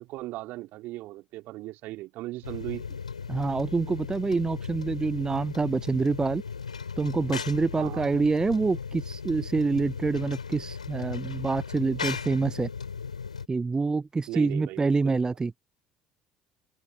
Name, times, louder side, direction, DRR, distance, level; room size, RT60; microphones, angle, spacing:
voice 1, 0.0-3.0 7.8-8.1 14.3-15.2, right 18 dB, 60° right, 2.8 m, -38 dB
sound 1, 2.4-13.5, left 6 dB, 85° left, 5.8 m, -37 dB
voice 2, 3.3-6.4 7.0-12.7 13.5-15.5, right 4 dB, 20° right, 0.5 m, -26 dB
open air
figure-of-eight pair, 60°, 4 cm